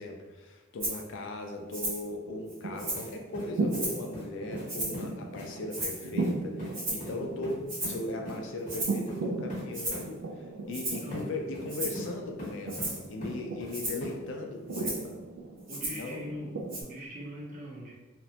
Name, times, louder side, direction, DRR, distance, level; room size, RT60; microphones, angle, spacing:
voice 1, 0.0-15.2 15.9-16.2, left 2 dB, 60° left, 3 dB, 0.4 m, -38 dB
Rattle (instrument), 0.8-1.0 1.7-2.1 2.5-3.1 3.7-4.1 4.7-5.1 5.7-6.1 6.7-7.1 7.7-8.0 8.7-9.1 9.7-10.1 10.7-11.1 11.7-12.0 12.7-13.0 13.7-14.0 14.7-15.1 15.7-16.1 16.7-16.8, right 1 dB, 65° right, 1.3 m, -35 dB
sound 1, 1.6-16.8, right 3 dB, 90° right, 0.4 m, -38 dB
sound 2, 2.9-3.1 3.3-4.3 4.5-4.7 4.9-5.0 5.3-5.5 5.8-5.9 6.2-6.3 6.6-6.7 7.0-7.1 7.4-7.9 8.2-8.4 8.6-8.8 9.1-9.2 9.5-9.6 9.9-10.0 11.1-11.2 11.5-12.1 12.4-12.9 13.2-13.7 14.0-14.1, left 1 dB, 40° left, 0.8 m, -41 dB
voice 2, 15.7-17.9, equal, 40° right, -3 dB, 0.6 m, -41 dB
2.8 x 2.1 x 2.7 m, 1.1 s
head